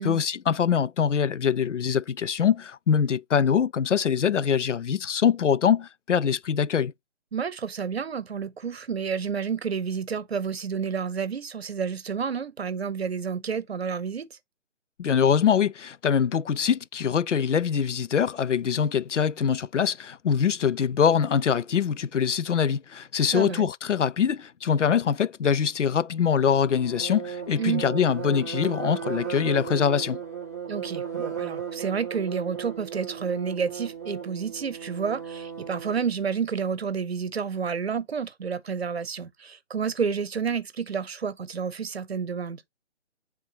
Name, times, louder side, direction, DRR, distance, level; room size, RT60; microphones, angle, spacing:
voice 1, 0.0-6.9 15.0-30.2, left 7 dB, 80° left, 0.5 m, -24 dB
voice 2, 7.3-14.4 23.3-23.7 27.6-27.8 30.7-42.6, right 6 dB, 55° right, 0.8 m, -30 dB
sound 1, 26.5-36.1, right 8 dB, 15° right, 0.6 m, -36 dB
9.9 x 3.7 x 2.8 m
figure-of-eight pair, 140°, 36 cm